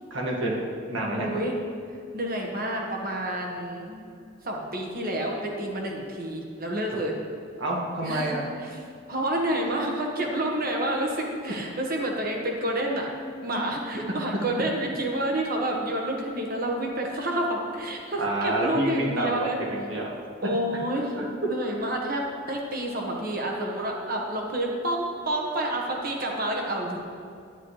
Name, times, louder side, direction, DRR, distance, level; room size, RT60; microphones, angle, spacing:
voice 1, 0.1-0.5 0.9-1.4 7.6-8.4 18.2-20.1 21.2-21.3, right 1 dB, 75° right, -3 dB, 1.8 m, -28 dB
voice 2, 1.2-1.5 2.1-4.0 4.4-7.1 8.0-8.8 9.1-13.1 13.4-19.6 20.4-21.1 21.4-27.0, right 1 dB, 50° right, 0 dB, 1.4 m, -29 dB
11.0 x 10.0 x 3.2 m, 2.4 s
head